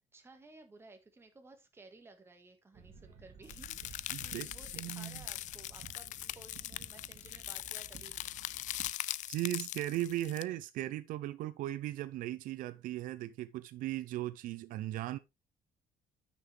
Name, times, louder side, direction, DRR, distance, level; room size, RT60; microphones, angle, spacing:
voice 1, 0.1-8.4, right 3 dB, 15° right, 1.7 m, -57 dB
sound 1, 2.7-8.9, right 5 dB, 55° right, 2.6 m, -54 dB
sound 2, 3.5-10.4, left 15 dB, 60° left, 0.4 m, -41 dB
voice 2, 4.1-4.5 4.7-5.2 9.3-15.2, right 14 dB, 75° right, 0.6 m, -37 dB
9.4 x 6.1 x 3.3 m
cardioid pair, 145°, 14 cm